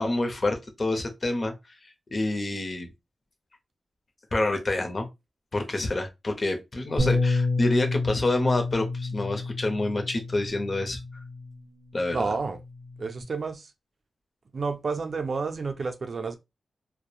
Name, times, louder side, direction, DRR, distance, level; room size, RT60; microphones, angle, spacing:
voice 1, 0.0-1.5 2.1-2.9 4.3-5.1 5.5-11.0 11.9-12.3, left 2 dB, 45° left, 0.7 m, -27 dB
Bass guitar, 7.0-11.5 12.3-13.2, left 3 dB, 5° left, 1.4 m, -29 dB
voice 2, 12.1-12.6 13.0-13.7 14.5-16.4, right 4 dB, 60° right, 0.4 m, -30 dB
2.8 x 2.1 x 2.3 m
cardioid pair, 65°, 0 cm